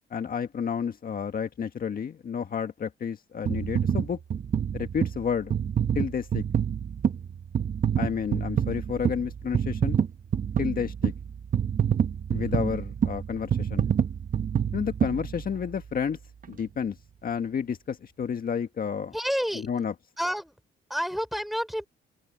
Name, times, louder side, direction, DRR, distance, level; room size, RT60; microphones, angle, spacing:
voice 1, 0.1-4.2 4.7-5.5 5.9-6.4 8.0-10.0 10.6-11.1 12.3-13.9 14.7-16.2 16.5-17.0 17.2-19.1 19.5-19.9, left 7 dB, 45° left, 1.7 m, -30 dB
sound 1, 3.5-15.9 16.4-16.5, right 8 dB, 45° right, 1.0 m, -27 dB
voice 2, 19.1-19.7 20.2-20.5 20.9-21.9, equal, ahead, 3.7 m, -29 dB
cardioid pair, 90°, 20 cm